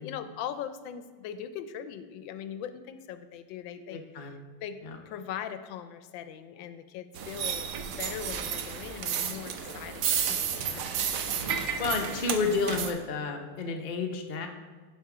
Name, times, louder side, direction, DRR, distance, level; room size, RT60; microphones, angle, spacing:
voice 1, 0.0-4.8 5.1-11.0, left 9 dB, 90° left, 10 dB, 1.3 m, -40 dB
voice 2, 3.9-4.4 4.8-5.0 11.8-14.5, left 4 dB, 65° left, 3 dB, 0.4 m, -31 dB
sound 1, 7.2-12.9, right 7 dB, 65° right, 0.8 m, -32 dB
10.0 x 4.3 x 4.8 m, 1.4 s
omnidirectional pair, 2.0 m